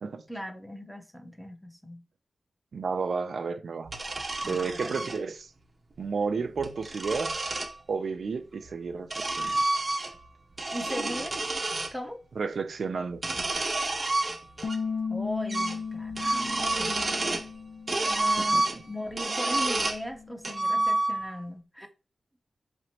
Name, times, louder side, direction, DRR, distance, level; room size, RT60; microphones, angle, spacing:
voice 1, 0.3-2.0 4.4-5.1 10.7-11.4 11.9-12.2 15.1-17.4 18.1-21.9, left 1 dB, ahead, 0.8 m, -38 dB
voice 2, 2.7-3.9 4.4-5.5 6.0-7.4 7.9-9.6 12.4-13.2 16.6-16.7 17.9-18.0 18.4-18.8, right 5 dB, 75° right, 0.4 m, -32 dB
sound 1, 3.9-5.2 6.4-7.7 8.6-10.3 10.5-11.9 13.1-14.8 15.1-15.2 15.5-15.8 16.1-17.5 17.9-20.0 20.4-21.4, right 2 dB, 35° right, 0.7 m, -29 dB
Bass guitar, 14.6-20.9, left 5 dB, 65° left, 0.5 m, -37 dB
5.1 x 3.1 x 2.9 m
wide cardioid pair, 95°, 0 cm